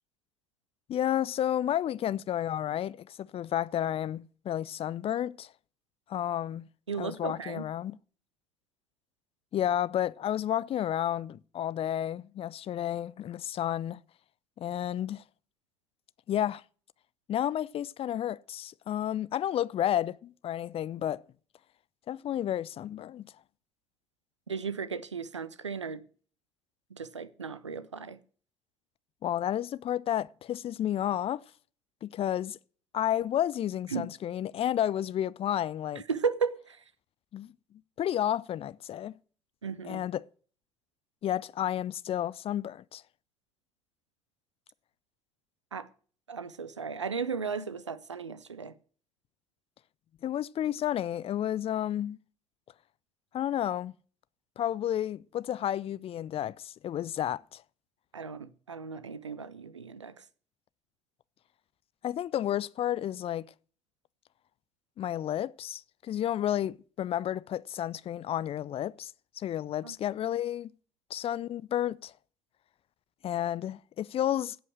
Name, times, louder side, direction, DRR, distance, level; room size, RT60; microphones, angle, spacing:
voice 1, 0.9-5.5 6.1-6.7 7.0-8.0 9.5-14.0 14.6-15.2 16.3-16.6 17.3-21.2 22.1-23.3 29.2-31.4 32.0-32.6 32.9-36.0 37.3-37.5 38.0-39.1 39.8-40.2 41.2-43.0 50.2-52.2 53.3-53.9 54.6-57.6 62.0-63.5 65.0-70.7 71.1-72.1 73.2-74.6, left 11 dB, 40° left, 0.4 m, -31 dB
voice 2, 6.9-7.7 24.5-26.0 26.9-28.2 33.9-34.1 36.0-36.8 39.6-40.0 45.7-45.9 46.3-48.7 58.1-60.2 69.8-69.9, right 5 dB, 85° right, 0.5 m, -35 dB
16.0 x 5.5 x 6.3 m
figure-of-eight pair, 45°, 15 cm